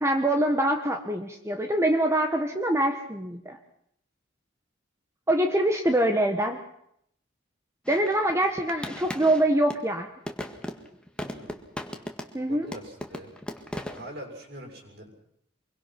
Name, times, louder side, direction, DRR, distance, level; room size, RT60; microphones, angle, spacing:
voice 1, 0.0-3.6 5.3-6.6 7.9-10.1 12.3-12.7, right 1 dB, 15° right, 4 dB, 1.4 m, -24 dB
sound 1, 7.8-9.9 10.3-12.4 12.7-14.1, left 1 dB, 5° left, 1.8 m, -37 dB
voice 2, 11.2-11.6 12.2-15.1, right 1 dB, 60° right, 1 dB, 7.2 m, -44 dB
25.0 x 23.0 x 6.0 m, 0.73 s
head